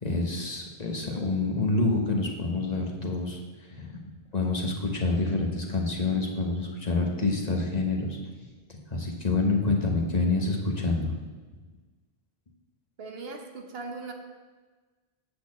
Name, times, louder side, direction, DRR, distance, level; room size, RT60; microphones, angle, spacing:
voice 1, 0.0-3.4 3.7-4.0 4.3-8.2 8.7-11.1, left 3 dB, 40° left, 1 dB, 1.2 m, -27 dB
voice 2, 13.0-14.1, right 3 dB, 70° right, 3 dB, 1.2 m, -39 dB
8.4 x 4.2 x 7.2 m, 1.4 s
omnidirectional pair, 1.0 m